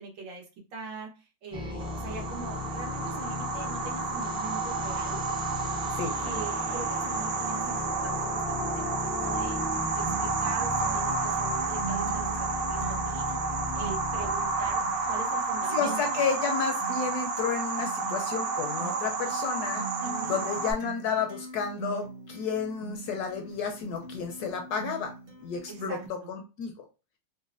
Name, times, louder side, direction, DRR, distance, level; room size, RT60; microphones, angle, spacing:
voice 1, 0.0-5.2 6.2-9.6 9.9-12.4 12.6-13.2 13.7-16.2 20.0-20.3 25.7-26.3, right 3 dB, 85° right, -1 dB, 1.7 m, -42 dB
sound 1, 1.5-15.6, left 3 dB, 5° right, 0.3 m, -37 dB
sound 2, 1.8-20.7, right 4 dB, 70° right, 1.0 m, -31 dB
Acoustic guitar, 10.1-26.1, right 4 dB, 35° right, 0.7 m, -43 dB
voice 2, 15.7-19.9 20.3-25.1 25.4-26.0 26.3-26.8, left 6 dB, 75° left, 4 dB, 1.0 m, -31 dB
3.9 x 2.1 x 2.5 m, 0.31 s
omnidirectional pair, 2.0 m